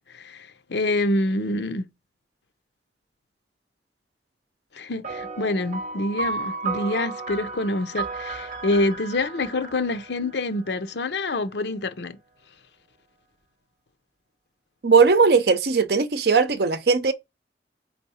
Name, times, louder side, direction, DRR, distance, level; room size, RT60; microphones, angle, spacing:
voice 1, 0.1-1.9 4.7-12.2, left 2 dB, 75° left, 0.7 m, -26 dB
sound 1, 5.0-10.8, right 3 dB, 45° right, 1.1 m, -33 dB
voice 2, 14.8-17.1, right 5 dB, 60° right, 0.7 m, -18 dB
4.6 x 4.3 x 5.7 m
head